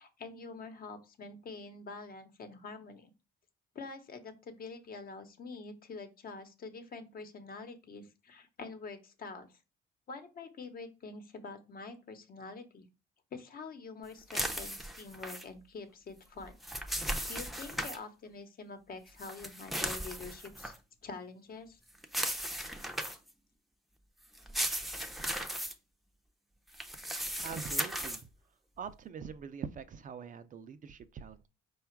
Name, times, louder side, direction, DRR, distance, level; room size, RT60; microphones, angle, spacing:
voice 1, 0.0-3.1 3.7-9.5 10.1-12.9 13.3-16.5 17.3-20.7 21.0-21.8, left 4 dB, 50° left, 1.0 m, -46 dB
sound 1, 14.3-15.4 16.4-18.0 19.2-20.8 22.0-23.3 24.3-25.7 26.7-28.2, equal, ahead, 0.6 m, -36 dB
voice 2, 27.4-28.2 28.8-31.5, right 6 dB, 45° right, 0.5 m, -43 dB
4.8 x 2.3 x 4.5 m
supercardioid pair, 85°, 19 cm